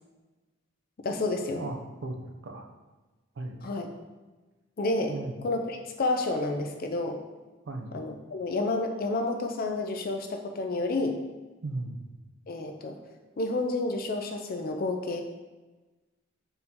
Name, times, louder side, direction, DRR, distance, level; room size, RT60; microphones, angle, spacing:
voice 1, 1.0-1.6 3.6-3.9 4.8-7.2 7.9-11.2 12.5-13.0 13.4-15.2, left 2 dB, 45° left, 5 dB, 0.4 m, -30 dB
voice 2, 1.6-2.7 3.4-3.6 5.1-5.3 7.7-7.9 11.6-12.1, right 2 dB, 60° right, 4 dB, 0.5 m, -36 dB
4.3 x 2.7 x 3.6 m, 1.2 s
head